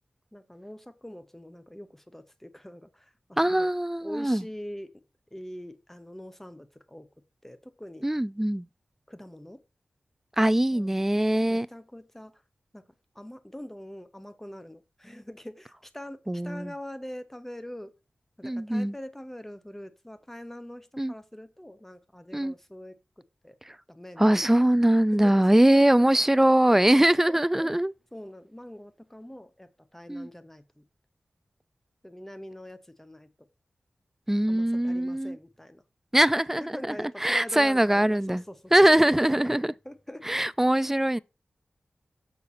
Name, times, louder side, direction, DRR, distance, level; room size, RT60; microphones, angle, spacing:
voice 1, 0.3-3.7 4.0-5.0 5.3-7.1 7.4-8.1 9.1-9.6 10.7-10.9 11.5-12.4 12.7-12.8 13.1-18.0 18.4-23.6 23.9-24.5 25.1-25.4 25.7-27.7 28.1-30.9 32.0-33.3 34.5-35.8 36.6-39.3 39.8-40.3, left 1 dB, 10° left, 0.9 m, -43 dB
voice 2, 3.4-4.4 8.0-8.7 10.4-11.7 16.3-16.7 18.4-18.9 21.0-21.1 22.3-22.5 23.7-23.8 24.2-27.9 30.1-30.3 34.3-35.4 36.1-36.9 37.2-38.4 38.7-39.7 40.2-41.2, right 1 dB, 10° right, 0.3 m, -22 dB
6.5 x 5.4 x 4.2 m
wide cardioid pair, 75°, 3 cm